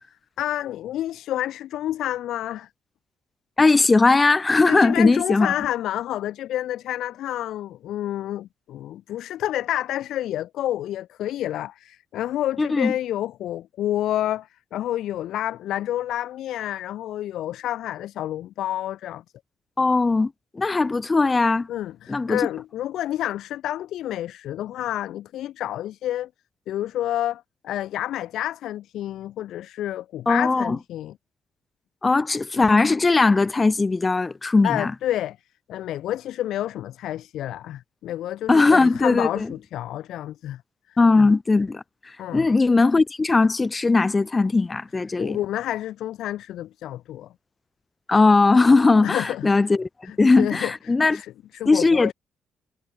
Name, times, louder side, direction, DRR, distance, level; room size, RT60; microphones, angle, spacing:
voice 1, 0.4-2.7 4.7-19.2 21.7-26.3 26.7-31.2 34.6-35.4 35.7-40.6 40.9-41.0 42.2-42.5 45.2-47.3 49.0-49.5 50.0-52.1, left 12 dB, 80° left, 4.5 m, -29 dB
voice 2, 3.6-5.5 12.6-12.9 19.8-21.7 22.1-22.5 30.3-30.8 32.0-34.9 38.5-39.5 41.0-41.8 42.3-45.4 48.1-49.9 50.2-51.2 51.7-52.1, left 3 dB, 25° left, 2.2 m, -19 dB
cardioid pair, 90°, 0 cm